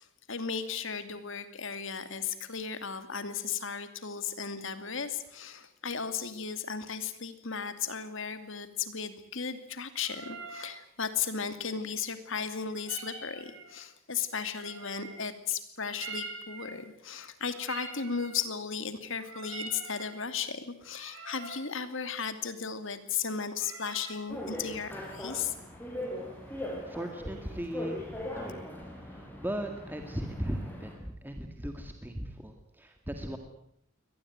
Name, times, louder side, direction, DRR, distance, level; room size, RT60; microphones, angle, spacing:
voice 1, 0.0-25.5, left 6 dB, 65° left, 11 dB, 2.6 m, -35 dB
sound 1, 10.0-10.7 12.7-13.8 14.4-15.3 15.9-16.8 17.5-18.4 19.1-20.1 20.9-21.6 23.6-24.2, right 3 dB, 70° right, 7.1 m, -44 dB
sound 2, 24.3-30.9, left 1 dB, 10° left, 6.2 m, -40 dB
voice 2, 26.6-33.4, equal, 10° right, 5 dB, 2.0 m, -38 dB
24.0 x 19.0 x 9.5 m, 0.70 s
head